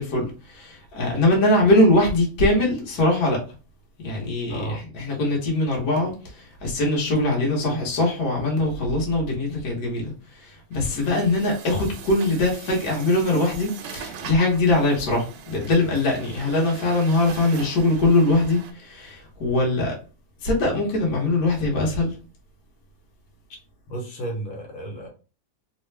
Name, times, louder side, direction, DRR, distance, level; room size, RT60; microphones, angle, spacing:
voice 1, 0.0-3.4 4.0-19.9 20.4-22.1, left 2 dB, 55° left, 1.6 m, -22 dB
voice 2, 4.5-4.8 7.6-7.8 23.9-25.1, right 2 dB, 80° left, 1.9 m, -32 dB
Truck, 10.7-18.7, right 6 dB, 70° right, 1.2 m, -41 dB
3.6 x 2.3 x 3.2 m
omnidirectional pair, 2.1 m